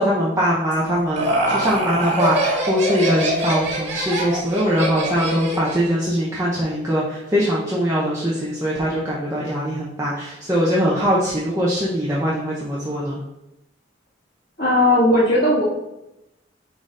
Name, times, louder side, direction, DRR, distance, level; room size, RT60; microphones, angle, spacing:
voice 1, 0.0-13.2, equal, 15° right, -6 dB, 0.9 m, -22 dB
Laughter, 0.7-5.9, right 1 dB, 75° right, 2.1 m, -24 dB
voice 2, 14.6-15.6, left 1 dB, 60° left, -8 dB, 2.1 m, -16 dB
9.3 x 3.9 x 2.6 m, 0.92 s
head